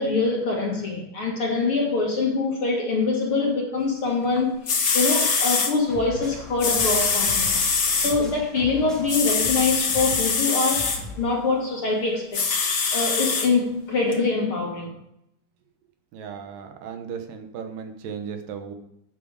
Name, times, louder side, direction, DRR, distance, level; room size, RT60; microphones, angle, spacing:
voice 1, 0.0-7.5 8.0-12.4 12.9-14.9, left 3 dB, 45° left, -1 dB, 2.2 m, -24 dB
sound 1, 4.4-4.5 4.7-5.7 6.6-8.1 9.1-11.0 12.3-13.5 14.1-14.2, left 5 dB, 60° left, 1.0 m, -23 dB
sound 2, 5.9-11.2, equal, ahead, 1.5 m, -38 dB
voice 2, 16.1-18.7, right 7 dB, 75° right, 6 dB, 2.7 m, -36 dB
10.5 x 8.2 x 4.9 m, 0.81 s
omnidirectional pair, 4.1 m